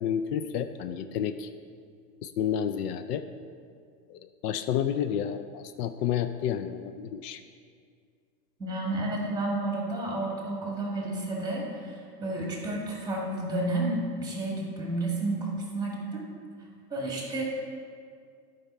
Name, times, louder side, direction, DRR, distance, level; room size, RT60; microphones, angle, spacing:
voice 1, 0.0-1.5 2.2-3.2 4.1-7.4, left 9 dB, 70° left, 10 dB, 0.6 m, -30 dB
voice 2, 8.6-16.2 16.9-17.7, right 2 dB, 10° right, -2 dB, 1.6 m, -31 dB
10.5 x 5.5 x 4.2 m, 2.2 s
supercardioid pair, 150°, 49 cm